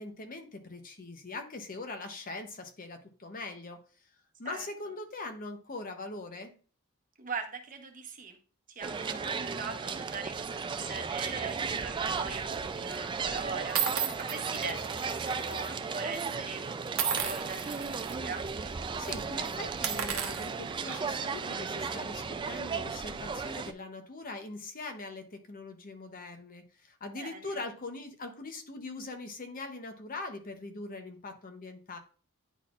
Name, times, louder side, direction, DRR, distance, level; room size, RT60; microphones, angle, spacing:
voice 1, 0.0-3.8 4.4-6.5 19.0-32.0, left 3 dB, 40° left, 7 dB, 0.8 m, -42 dB
voice 2, 7.2-8.4 8.7-18.5 27.1-27.6, right 4 dB, 40° right, 4 dB, 1.0 m, -41 dB
sound 1, 8.8-23.7, right 5 dB, 20° right, 0.3 m, -35 dB
sound 2, 12.1-12.4 13.1-13.2 13.8-15.7 16.0-16.2 17.0-18.1 18.6-18.7 19.0-19.2 19.7-21.3, right 8 dB, 65° right, 0.9 m, -35 dB
10.0 x 4.1 x 2.4 m, 0.38 s
head